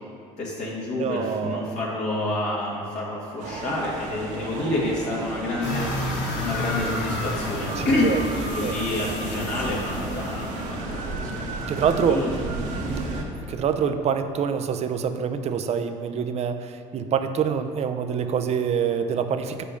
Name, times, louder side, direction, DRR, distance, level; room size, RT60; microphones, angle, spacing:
voice 1, 0.4-8.1 8.4-11.4 12.0-12.4 12.7-13.0, left 2 dB, 55° left, -6 dB, 1.7 m, -29 dB
voice 2, 1.0-1.8 7.8-8.2 8.6-8.8 11.7-12.2 12.9-13.1 13.4-19.6, right 7 dB, 50° right, 9 dB, 0.6 m, -26 dB
sound 1, 3.4-13.2, right 2 dB, 65° right, 1.2 m, -33 dB
sound 2, 5.6-10.8, left 2 dB, 90° left, 1.2 m, -31 dB
5.6 x 5.0 x 6.5 m, 2.7 s
supercardioid pair, 75°, 14 cm